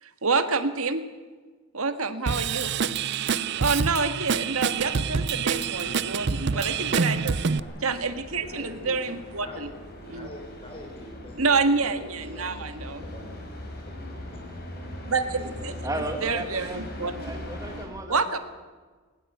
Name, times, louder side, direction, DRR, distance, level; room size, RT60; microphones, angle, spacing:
voice 1, 0.0-1.1 1.7-2.8 3.6-7.6 7.8-9.7 10.1-10.3 11.4-13.0 15.1-15.7 16.2-17.3 18.1-18.4, right 4 dB, 75° right, 9 dB, 1.8 m, -27 dB
Drum kit / Drum, 2.3-7.6, right 5 dB, 50° right, 0.6 m, -27 dB
sound 1, 4.8-17.9, left 1 dB, 45° left, 5.0 m, -41 dB
voice 2, 6.4-7.3 7.6-7.7 8.4-9.1 9.4-9.7 10.1-13.4 13.9-14.0 14.3-14.4 15.4-15.9, left 1 dB, 25° left, 1 dB, 5.6 m, -44 dB
voice 3, 15.8-18.4, right 2 dB, 15° right, 5 dB, 2.3 m, -35 dB
21.0 x 19.5 x 8.0 m, 1.4 s
head